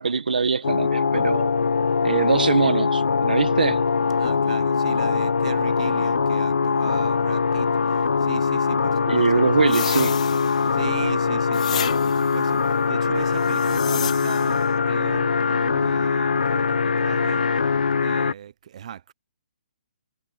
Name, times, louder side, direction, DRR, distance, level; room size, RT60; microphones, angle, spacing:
voice 1, 0.0-1.6 2.0-3.8 9.1-10.2, right 5 dB, 85° right, 1.1 m, -22 dB
sound 1, 0.6-18.3, left 5 dB, 80° left, 0.9 m, -22 dB
voice 2, 4.2-9.7 10.7-17.4 18.0-19.1, right 9 dB, 50° right, 0.8 m, -37 dB
sound 2, 9.7-10.9 11.5-12.4 13.4-14.6, left 9 dB, 50° left, 1.6 m, -32 dB
hypercardioid pair, 155°, 5 cm